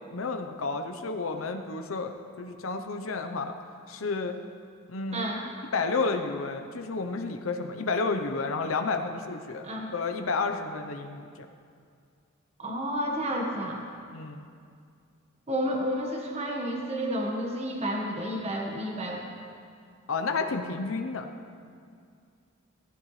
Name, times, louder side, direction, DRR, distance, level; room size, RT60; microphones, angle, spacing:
voice 1, 0.1-3.5 3.9-4.4 4.9-5.3 5.7-9.6 9.9-11.5 14.1-14.4 20.1-21.3, left 4 dB, 85° left, 5 dB, 0.8 m, -31 dB
voice 2, 5.1-5.4 9.6-9.9 12.6-13.8 15.5-19.2, equal, 30° right, -1 dB, 1.4 m, -31 dB
18.5 x 15.0 x 3.2 m, 2.3 s
head